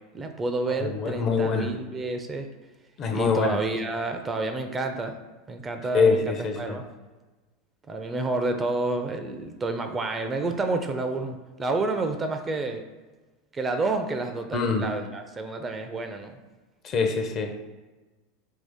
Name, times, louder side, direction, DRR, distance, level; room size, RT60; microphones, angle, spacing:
voice 1, 0.1-2.5 3.1-5.2 5.5-6.9 7.9-12.8 13.5-16.4, right 2 dB, 25° right, 6 dB, 0.4 m, -29 dB
voice 2, 0.7-1.7 3.0-3.6 5.9-6.8 14.5-14.8 16.8-17.6, left 4 dB, 40° left, 5 dB, 0.5 m, -24 dB
2.8 x 2.7 x 3.5 m, 1.2 s
hypercardioid pair, 95°, 0 cm